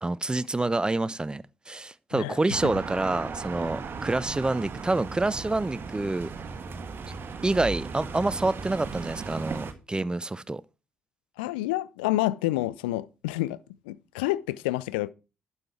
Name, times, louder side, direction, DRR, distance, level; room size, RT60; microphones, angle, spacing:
voice 1, 0.0-6.3 7.4-10.6, right 2 dB, 15° right, 0.6 m, -27 dB
sound 1, 2.5-9.7, right 5 dB, 45° right, 1.4 m, -37 dB
voice 2, 11.4-13.6 13.9-15.1, left 17 dB, 75° left, 0.4 m, -28 dB
11.5 x 5.7 x 4.6 m
figure-of-eight pair, 40°, 5 cm